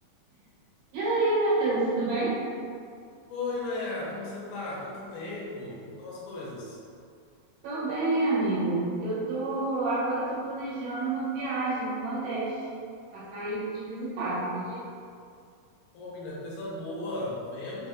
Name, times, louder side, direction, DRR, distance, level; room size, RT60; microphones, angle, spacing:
voice 1, 0.9-2.4 7.6-12.6 13.1-14.8, right 2 dB, 75° right, -9 dB, 2.5 m, -28 dB
voice 2, 3.3-6.8 15.9-17.9, left 2 dB, 85° left, -5 dB, 2.6 m, -36 dB
5.8 x 2.6 x 2.3 m, 2.3 s
omnidirectional pair, 4.5 m